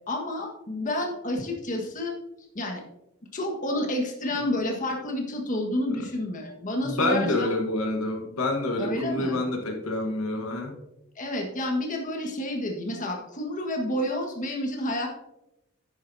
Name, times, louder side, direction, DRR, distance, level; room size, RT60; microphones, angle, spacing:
voice 1, 0.1-2.2 2.5-2.8 3.3-7.5 8.8-9.4 11.1-15.1, left 1 dB, 35° left, 1 dB, 1.6 m, -29 dB
voice 2, 6.8-10.8, left 2 dB, 85° left, 3 dB, 1.3 m, -27 dB
10.5 x 9.0 x 2.7 m, 0.89 s
head